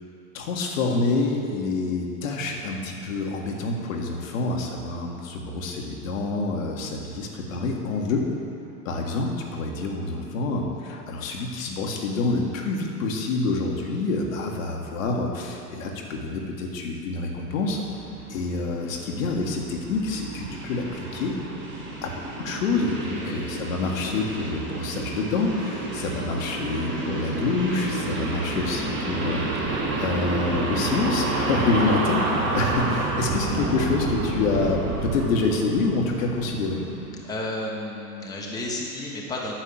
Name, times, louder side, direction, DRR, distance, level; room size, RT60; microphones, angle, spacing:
voice 1, 0.3-8.3 8.8-17.8 18.3-21.4 22.0-29.4 29.7-36.8, left 3 dB, 55° left, 0 dB, 1.6 m, -27 dB
sound 1, 17.5-37.1, right 2 dB, 25° right, 1.9 m, -30 dB
voice 2, 23.1-23.4 31.7-31.9 37.2-39.5, left 1 dB, 10° left, -3 dB, 1.3 m, -32 dB
9.2 x 6.4 x 7.4 m, 2.6 s
figure-of-eight pair, 100°, 48 cm